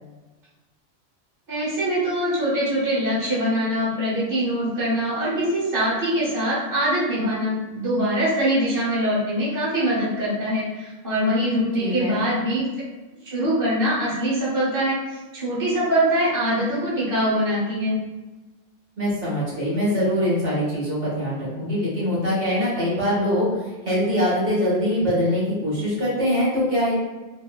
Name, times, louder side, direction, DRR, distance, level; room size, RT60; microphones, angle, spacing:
voice 1, 1.5-12.6 13.2-18.0, equal, 15° right, -9 dB, 1.0 m, -23 dB
voice 2, 11.8-12.2 19.0-26.9, equal, 65° right, -8 dB, 1.5 m, -23 dB
4.2 x 2.0 x 2.2 m, 1.2 s
omnidirectional pair, 1.2 m